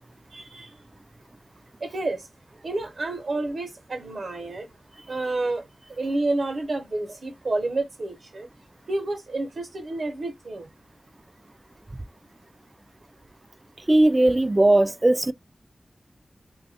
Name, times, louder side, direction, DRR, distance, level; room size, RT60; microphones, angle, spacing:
voice 1, 0.3-0.7 1.8-2.3 2.6-4.7 5.1-5.6 6.0-8.5 8.9-10.7, right 2 dB, 70° right, 0.9 m, -29 dB
voice 2, 13.9-15.3, right 1 dB, 25° right, 0.3 m, -18 dB
2.7 x 2.5 x 4.1 m
wide cardioid pair, 75°, 0 cm